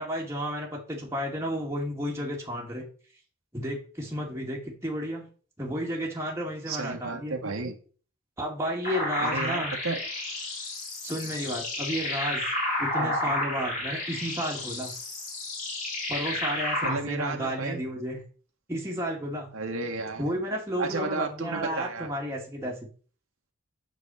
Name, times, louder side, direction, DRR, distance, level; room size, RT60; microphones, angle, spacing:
voice 1, 0.0-2.8 3.5-5.3 5.6-7.3 8.4-9.7 11.0-12.4 12.8-14.9 16.1-18.2 18.7-19.5 20.2-22.8, equal, 15° right, -2 dB, 1.8 m, -32 dB
voice 2, 6.7-7.7 9.2-10.0 12.9-13.4 16.8-17.8 19.5-20.4 20.8-22.1, right 3 dB, 90° right, 3 dB, 1.8 m, -33 dB
sound 1, 8.8-16.9, left 1 dB, 40° left, 2.9 m, -31 dB
8.2 x 4.2 x 6.9 m, 0.41 s
head